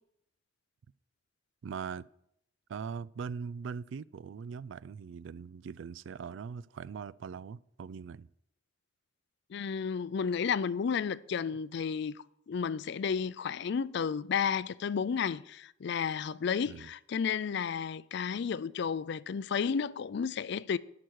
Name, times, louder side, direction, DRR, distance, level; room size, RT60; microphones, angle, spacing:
voice 1, 1.6-2.0 2.7-8.3 16.7-16.9, right 6 dB, 70° right, 0.3 m, -41 dB
voice 2, 9.5-12.2 12.5-20.8, left 6 dB, 60° left, 0.4 m, -32 dB
11.5 x 6.0 x 6.3 m
head